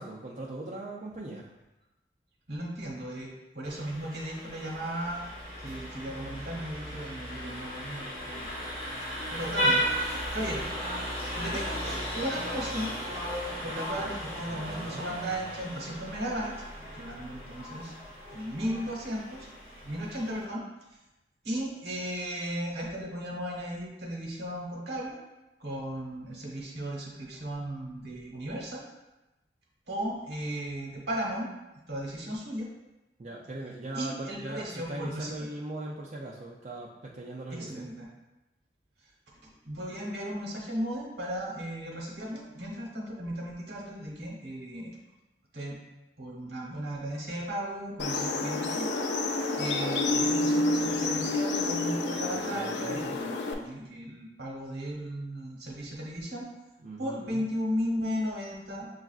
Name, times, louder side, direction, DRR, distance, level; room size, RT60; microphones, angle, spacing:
voice 1, 0.0-1.5 14.5-15.1 33.2-37.9 52.2-53.1 56.8-57.4, right 2 dB, 40° right, -4 dB, 0.4 m, -40 dB
voice 2, 2.5-5.3 5.6-8.5 9.3-10.6 11.4-12.9 13.6-16.5 16.9-17.9 18.3-19.5 19.8-20.6 21.4-25.2 25.6-28.8 29.9-31.5 31.9-32.7 33.9-35.5 37.5-38.1 39.4-45.0 45.5-45.8 46.2-48.9 49.6-56.4 57.0-58.9, equal, 70° right, -2 dB, 1.0 m, -35 dB
Vehicle horn car horn honking, 3.6-20.5, equal, 40° left, 1.4 m, -35 dB
sound 1, 48.0-53.5, left 2 dB, 85° left, 0.5 m, -29 dB
6.8 x 2.4 x 2.3 m, 1.0 s
head